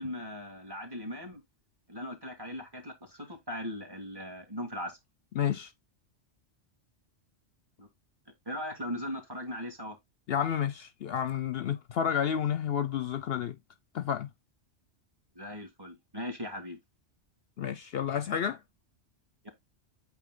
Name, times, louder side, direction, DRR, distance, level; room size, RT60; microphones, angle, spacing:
voice 1, 0.0-1.4 1.9-5.0 7.8-7.9 8.5-10.0 15.4-16.8 19.4-19.5, equal, 20° right, 1.9 m, -39 dB
voice 2, 5.4-5.7 10.3-13.6 13.9-14.3 17.6-18.6, left 8 dB, 65° left, 0.8 m, -30 dB
8.3 x 3.2 x 3.7 m
omnidirectional pair, 1.2 m